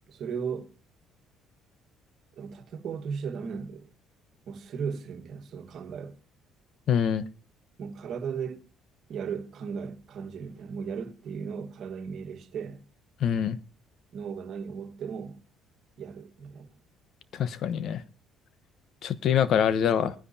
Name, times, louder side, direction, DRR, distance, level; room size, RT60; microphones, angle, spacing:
voice 1, 0.1-0.7 2.4-3.9 4.5-6.2 7.8-8.7 9.1-12.8 14.1-15.4 16.0-16.7, right 6 dB, 60° right, 1.5 m, -36 dB
voice 2, 6.9-7.2 13.2-13.6 17.3-18.0 19.0-20.1, left 8 dB, 60° left, 1.0 m, -25 dB
20.0 x 10.0 x 2.8 m
cardioid pair, 95°, 0 cm